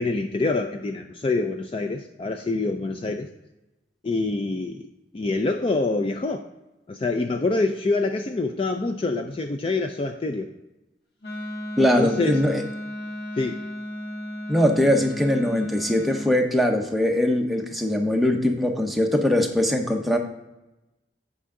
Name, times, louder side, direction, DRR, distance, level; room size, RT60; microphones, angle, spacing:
voice 1, 0.0-3.3 4.0-6.5 6.9-10.5 11.8-12.4 13.4-13.6, left 3 dB, 30° left, 6 dB, 0.3 m, -26 dB
Wind instrument woodwind instrument, 11.2-16.4, equal, 60° left, 1.6 m, -34 dB
voice 2, 11.8-12.6 14.5-20.2, left 1 dB, ahead, 2 dB, 0.7 m, -21 dB
8.3 x 5.5 x 3.6 m, 1.0 s
head